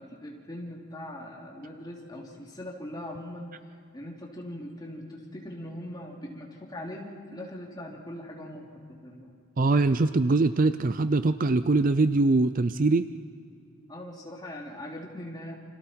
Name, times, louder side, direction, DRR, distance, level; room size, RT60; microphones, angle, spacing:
voice 1, 0.0-3.5 3.9-9.3 13.9-15.6, left 1 dB, 20° left, -2 dB, 3.1 m, -41 dB
voice 2, 9.6-13.1, right 3 dB, 40° right, 12 dB, 0.5 m, -22 dB
29.5 x 27.0 x 4.5 m, 2.5 s
head